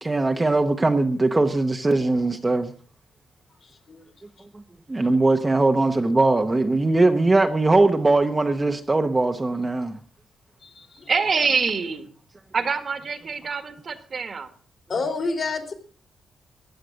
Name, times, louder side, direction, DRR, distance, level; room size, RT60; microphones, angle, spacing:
voice 1, 0.0-2.7 4.9-10.0, right 2 dB, 20° right, 1.0 m, -20 dB
voice 2, 3.6-4.0 10.6-11.1 14.9-15.7, left 3 dB, 45° left, 3.0 m, -29 dB
voice 3, 11.1-12.1 12.5-14.5, right 5 dB, 40° right, 1.6 m, -25 dB
15.0 x 10.0 x 6.4 m
wide cardioid pair, 135°, 0 cm